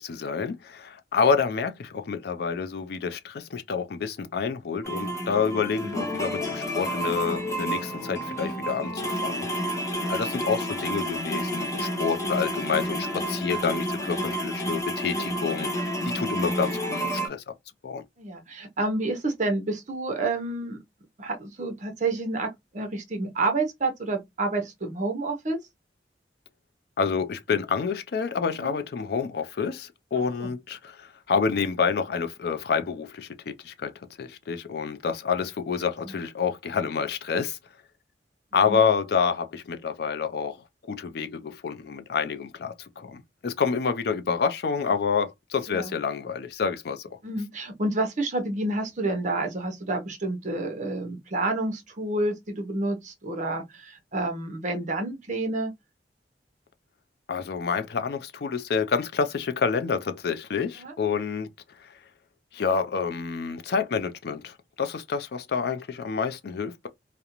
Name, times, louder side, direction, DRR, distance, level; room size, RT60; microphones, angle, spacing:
voice 1, 0.0-9.8 10.1-15.7 16.0-17.4 17.8-18.0 27.0-33.9 34.2-37.6 38.5-40.6 40.9-47.1 57.3-61.5 61.8-61.9 62.5-66.9, left 5 dB, 60° left, 0.4 m, -28 dB
sound 1, 4.8-17.3, equal, 20° left, 0.7 m, -30 dB
voice 2, 18.2-20.8 21.2-25.6 28.6-28.7 30.4-30.5 36.0-36.2 38.7-38.9 45.7-45.9 47.2-55.7 60.8-60.9, right 2 dB, 45° right, 0.7 m, -29 dB
2.4 x 2.1 x 2.9 m
head